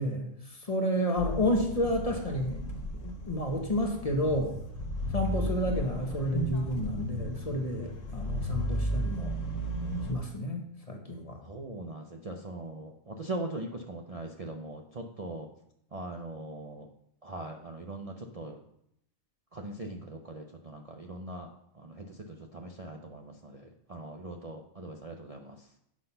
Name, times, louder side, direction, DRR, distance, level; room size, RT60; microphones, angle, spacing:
voice 1, 0.0-2.6 3.0-4.5 5.1-9.3 10.1-11.4, equal, 30° left, 2 dB, 1.1 m, -30 dB
sound 1, 1.2-10.1, equal, 90° left, 1.6 m, -34 dB
voice 2, 11.4-15.5 15.9-16.9 17.2-18.6 19.5-21.5 21.7-25.6, right 2 dB, 35° right, 1 dB, 0.7 m, -41 dB
7.8 x 6.0 x 5.5 m, 0.75 s
omnidirectional pair, 1.3 m